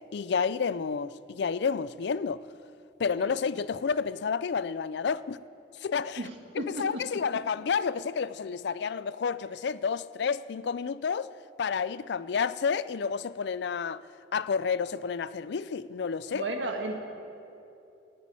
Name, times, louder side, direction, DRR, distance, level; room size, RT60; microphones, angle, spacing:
voice 1, 0.1-2.4 3.0-5.4 5.7-6.3 6.5-11.3 11.6-14.0 14.3-16.4, left 6 dB, 65° left, 0.4 m, -30 dB
voice 2, 16.3-17.0, right 2 dB, 85° right, 1.7 m, -33 dB
14.0 x 9.5 x 9.8 m
head